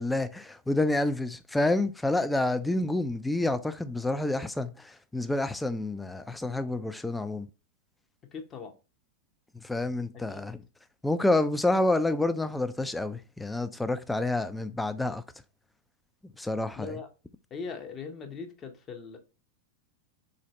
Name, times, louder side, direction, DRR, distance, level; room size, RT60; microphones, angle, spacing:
voice 1, 0.0-7.5 9.6-10.6 11.0-15.2 16.4-16.9, left 2 dB, 5° left, 0.3 m, -28 dB
voice 2, 8.3-8.7 10.3-10.4 16.8-17.1 17.5-19.2, left 5 dB, 25° left, 0.7 m, -40 dB
4.0 x 2.6 x 3.0 m
figure-of-eight pair, 90°, 0 cm